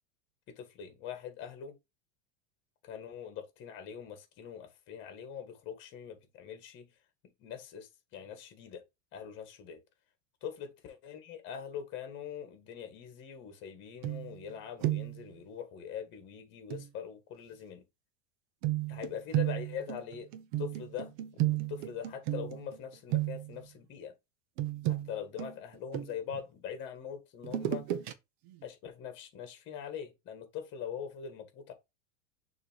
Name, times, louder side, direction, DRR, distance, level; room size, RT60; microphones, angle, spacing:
voice 1, 0.5-1.8 2.8-6.9 7.4-8.8 9.1-9.8 10.4-17.8 18.9-20.3 20.6-24.1 24.8-27.8 28.6-31.7, left 8 dB, 30° left, 1.7 m, -43 dB
sound 1, 14.0-14.5 14.8-15.3 16.7-16.9 18.6-22.8 23.1-23.6 24.6-26.4 27.4-28.1 28.5-28.6, right 14 dB, 45° right, 0.8 m, -33 dB
6.6 x 3.1 x 4.6 m
supercardioid pair, 170°, 37 cm